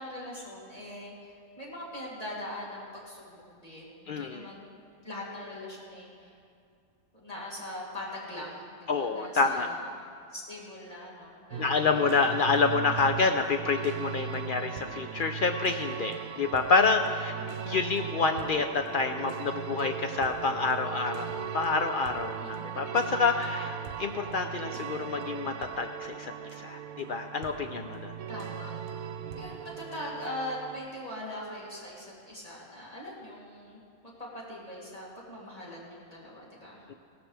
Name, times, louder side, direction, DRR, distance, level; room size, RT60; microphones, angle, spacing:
voice 1, 0.0-4.8 5.0-6.3 7.1-11.8 17.3-18.1 21.4-21.5 22.4-22.9 28.3-36.9, left 1 dB, 25° left, -6 dB, 3.1 m, -42 dB
voice 2, 4.1-4.5 8.9-9.7 11.6-17.3 17.7-28.1 36.9-37.0, left 4 dB, 80° left, 6 dB, 0.4 m, -28 dB
sound 1, 11.5-30.8, right 9 dB, 80° right, 1.1 m, -38 dB
17.0 x 13.5 x 3.4 m, 2.4 s
omnidirectional pair, 1.5 m